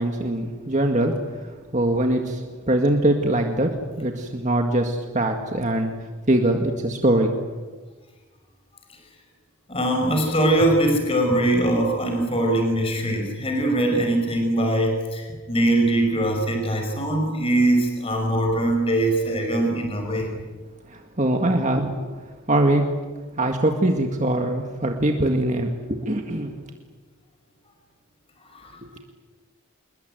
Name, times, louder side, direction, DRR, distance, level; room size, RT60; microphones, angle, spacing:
voice 1, 0.0-5.9 6.3-7.3 20.9-22.0 22.5-22.8 23.4-26.7, right 1 dB, 35° right, 3 dB, 1.9 m, -22 dB
voice 2, 9.7-20.3 28.5-28.8, right 1 dB, 25° left, 3 dB, 5.5 m, -22 dB
27.5 x 22.0 x 9.2 m, 1.3 s
head